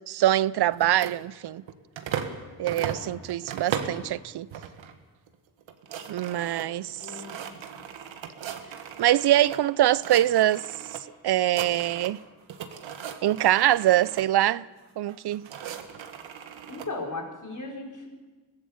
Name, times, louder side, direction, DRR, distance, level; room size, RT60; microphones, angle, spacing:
voice 1, 0.0-1.6 2.6-4.5 6.1-7.0 9.0-10.7 11.2-12.2 13.2-14.6 15.0-15.5, right 13 dB, 60° right, 0.5 m, -23 dB
sound 1, 0.7-2.4 2.7-4.1 4.5-4.9 5.3-5.4 5.6-9.6 9.9-11.0 11.3-12.2 12.5-14.3 15.1-16.9, right 8 dB, 85° right, 1.7 m, -37 dB
voice 2, 7.0-7.8 16.7-18.2, left 2 dB, 40° left, 4.5 m, -37 dB
23.0 x 15.5 x 7.2 m
cardioid pair, 90°, 45 cm